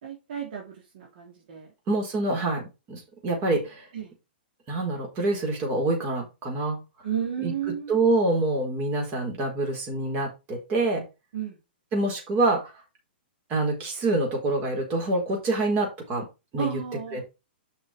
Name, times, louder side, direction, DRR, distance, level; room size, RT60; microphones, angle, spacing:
voice 1, 0.0-1.7 3.9-4.1 7.0-8.0 11.3-11.6 16.6-17.2, right 8 dB, 60° right, -1 dB, 3.0 m, -33 dB
voice 2, 1.9-2.6 2.9-3.9 4.7-6.8 7.4-7.5 7.9-11.0 11.9-12.7 13.5-16.3 16.5-16.8 17.1-17.2, right 2 dB, 35° right, 1 dB, 4.5 m, -26 dB
6.3 x 6.2 x 5.1 m, 0.27 s
hypercardioid pair, 130°, 6 cm